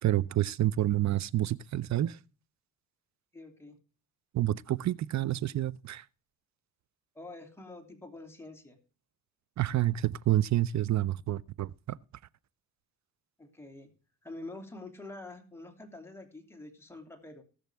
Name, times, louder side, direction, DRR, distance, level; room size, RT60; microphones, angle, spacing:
voice 1, 0.0-2.2 4.3-6.0 9.6-12.0, right 13 dB, 45° right, 0.6 m, -28 dB
voice 2, 3.3-3.8 7.1-8.8 13.4-13.9 14.2-17.4, left 2 dB, 5° left, 2.7 m, -46 dB
19.0 x 6.5 x 3.4 m
cardioid pair, 95°, 38 cm